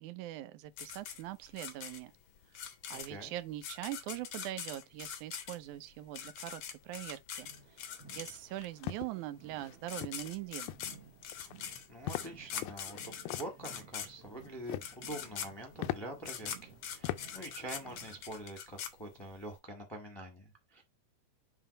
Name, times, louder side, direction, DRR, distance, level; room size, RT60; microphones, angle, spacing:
voice 1, 0.0-2.1 2.9-7.5 8.1-10.8, right 14 dB, 85° right, 2.1 m, -42 dB
sound 1, 0.8-8.7 9.5-9.6 9.8-19.5, left 8 dB, 70° left, 1.1 m, -43 dB
voice 2, 2.9-3.3 11.9-20.8, right 1 dB, 15° left, 0.8 m, -45 dB
sound 2, 7.4-18.2, right 7 dB, 60° right, 2.5 m, -57 dB
sound 3, 8.5-9.1 9.6-9.8 10.0-10.3 10.7-11.0 11.3-11.7 12.1-12.3 12.6-13.5 14.4-15.0 15.4-15.5 15.8-16.0 16.6-16.7 17.0-17.2 17.6-18.0, left 14 dB, 90° left, 2.0 m, -39 dB
7.3 x 2.7 x 5.3 m
omnidirectional pair, 3.4 m